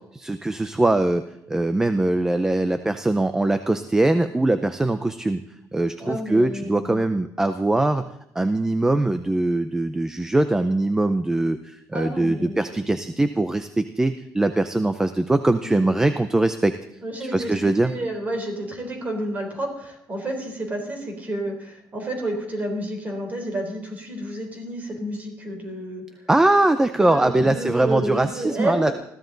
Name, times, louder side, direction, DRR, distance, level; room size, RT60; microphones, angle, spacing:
voice 1, 0.1-1.2 1.5-5.4 5.7-8.1 8.4-16.7 17.3-17.9 26.3-28.9, right 2 dB, 10° right, 9 dB, 0.5 m, -21 dB
voice 2, 6.0-7.0 11.9-13.0 15.6-16.0 17.0-26.2 27.0-28.9, right 1 dB, 25° right, 4 dB, 3.8 m, -30 dB
20.5 x 15.0 x 4.0 m, 0.80 s
cardioid pair, 170°, 6 cm